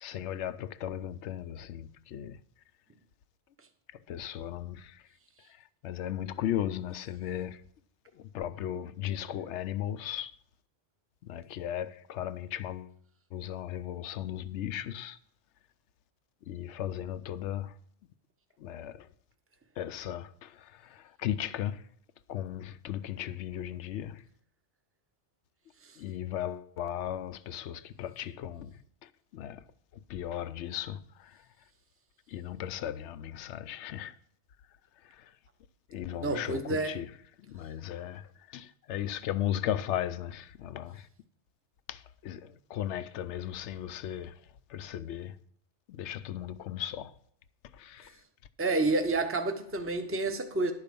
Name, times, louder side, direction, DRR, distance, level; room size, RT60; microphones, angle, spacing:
voice 1, 0.0-2.4 4.1-5.0 5.5-7.6 8.2-10.3 11.2-12.9 13.3-15.2 16.5-17.7 18.6-19.1 19.8-21.9 22.3-24.2 26.0-29.6 29.9-31.4 32.3-34.1 35.0-35.3 35.9-37.1 37.4-41.1 41.9-44.4 44.7-45.4 45.9-47.1 47.7-48.2, left 11 dB, 85° left, 0.9 m, -36 dB
voice 2, 36.2-37.0 48.6-50.7, right 2 dB, 15° right, 0.7 m, -29 dB
11.5 x 4.8 x 6.8 m
omnidirectional pair, 1.2 m